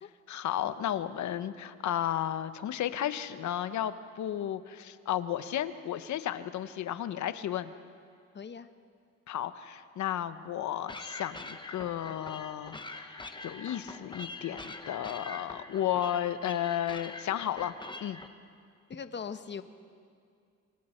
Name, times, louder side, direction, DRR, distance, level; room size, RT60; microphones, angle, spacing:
voice 1, 0.3-7.7 9.3-17.7 18.0-18.2, left 11 dB, 70° left, 12 dB, 1.0 m, -33 dB
voice 2, 8.3-8.7 18.9-19.6, left 6 dB, 35° left, 9 dB, 1.2 m, -40 dB
sound 1, 10.9-18.3, left 2 dB, 15° left, 1.3 m, -44 dB
26.5 x 23.0 x 4.5 m, 2.3 s
cardioid pair, 90°, 30 cm